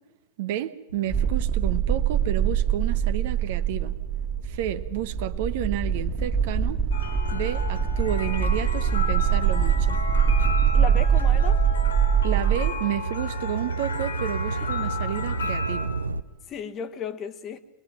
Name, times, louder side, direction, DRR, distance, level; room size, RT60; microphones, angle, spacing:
voice 1, 0.4-4.0 4.4-6.8 7.3-10.0 12.2-15.9, right 12 dB, 50° right, 1.0 m, -31 dB
sound 1, 0.9-7.6 8.2-16.2, right 4 dB, 80° right, 0.8 m, -35 dB
sound 2, 1.1-12.7, right 8 dB, 25° right, 2.0 m, -23 dB
sound 3, 6.9-15.9, left 4 dB, 70° left, 3.2 m, -33 dB
voice 2, 10.7-11.6 16.5-17.6, left 7 dB, 30° left, 1.4 m, -34 dB
25.0 x 21.0 x 6.0 m
figure-of-eight pair, 90°, 0 cm